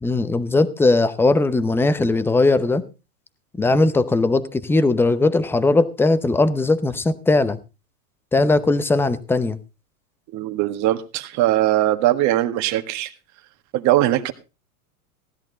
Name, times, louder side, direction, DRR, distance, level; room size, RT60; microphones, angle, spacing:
voice 1, 0.0-2.8 3.6-7.6 8.3-9.6, left 2 dB, 5° left, 14 dB, 0.7 m, -19 dB
voice 2, 10.3-13.1 13.7-14.3, right 14 dB, 40° right, 9 dB, 1.6 m, -20 dB
16.5 x 11.0 x 3.9 m, 0.30 s
supercardioid pair, 130°, 44 cm